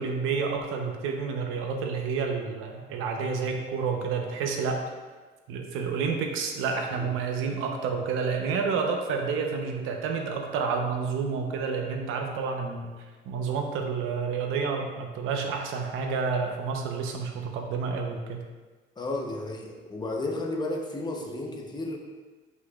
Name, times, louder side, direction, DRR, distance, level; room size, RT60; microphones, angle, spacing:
voice 1, 0.0-4.8 5.5-12.9 13.3-18.4, right 5 dB, 80° right, 3 dB, 0.9 m, -29 dB
voice 2, 19.0-22.0, left 2 dB, 20° left, 1 dB, 0.9 m, -33 dB
8.2 x 5.4 x 2.4 m, 1.3 s
cardioid pair, 120°, 21 cm